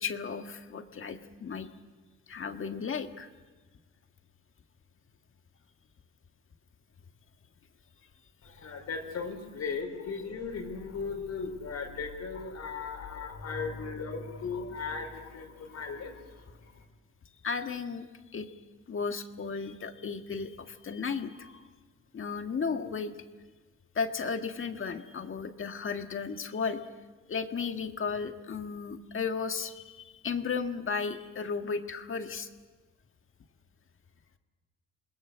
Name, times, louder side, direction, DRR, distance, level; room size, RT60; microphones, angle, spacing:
voice 1, 0.0-1.7 2.3-3.3 17.4-18.1 18.3-18.5 18.9-21.7 22.1-23.1 23.9-26.8 27.3-32.5, left 5 dB, 45° left, 6 dB, 1.7 m, -34 dB
voice 2, 8.4-16.8, left 5 dB, 60° left, 4 dB, 4.7 m, -37 dB
27.5 x 20.5 x 6.4 m, 1.3 s
cardioid pair, 90°, 30 cm